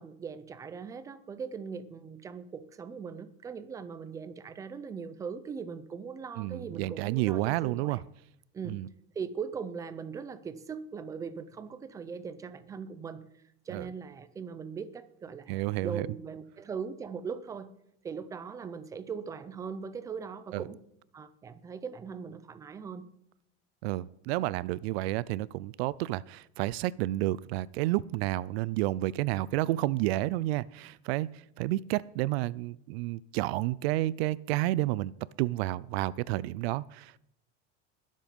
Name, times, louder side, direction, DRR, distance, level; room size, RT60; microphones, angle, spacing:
voice 1, 0.0-8.0 8.5-8.8 9.1-13.2 13.7-17.7 18.0-20.8 21.1-23.1, right 6 dB, 10° right, 0.4 m, -40 dB
voice 2, 6.4-8.0 8.6-8.9 13.7-13.9 15.5-16.1 20.5-20.6 23.8-35.1 35.4-37.2, right 17 dB, 70° right, 0.5 m, -30 dB
21.0 x 7.6 x 5.3 m
cardioid pair, 175°, 33 cm